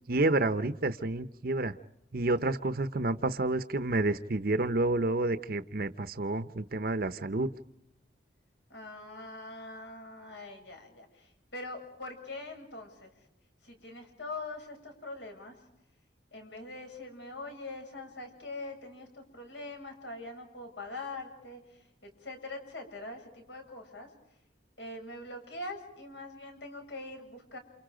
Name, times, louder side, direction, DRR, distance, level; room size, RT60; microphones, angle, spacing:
voice 1, 0.1-1.7 2.1-7.5, right 2 dB, 55° right, 11 dB, 0.8 m, -29 dB
voice 2, 8.7-13.1 13.6-15.5 16.3-24.1 24.8-27.6, left 2 dB, 75° left, 4 dB, 7.5 m, -43 dB
29.0 x 28.5 x 5.1 m, 0.84 s
head